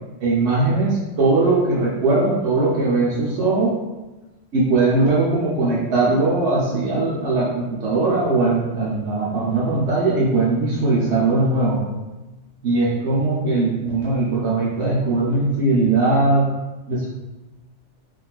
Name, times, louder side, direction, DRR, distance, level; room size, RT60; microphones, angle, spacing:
voice 1, 0.2-3.8 4.5-11.8 12.6-16.5 16.9-17.1, right 3 dB, 75° right, -6 dB, 1.0 m, -20 dB
3.8 x 2.6 x 2.3 m, 1.1 s
omnidirectional pair, 1.2 m